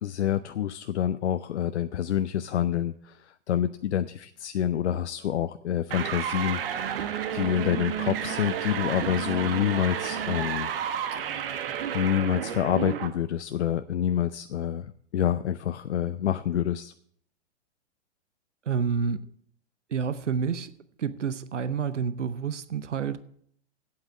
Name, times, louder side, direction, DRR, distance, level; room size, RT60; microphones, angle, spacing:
voice 1, 0.0-7.0 7.3-10.7 11.3-11.6 11.9-16.9, left 10 dB, 70° left, 11 dB, 0.6 m, -27 dB
sound 1, 5.9-13.1, right 9 dB, 50° right, 1.3 m, -31 dB
voice 2, 18.7-19.2 19.9-20.7 21.0-23.2, right 6 dB, 85° right, 14 dB, 0.8 m, -29 dB
8.7 x 8.1 x 7.5 m, 0.64 s
hypercardioid pair, 115°, 35 cm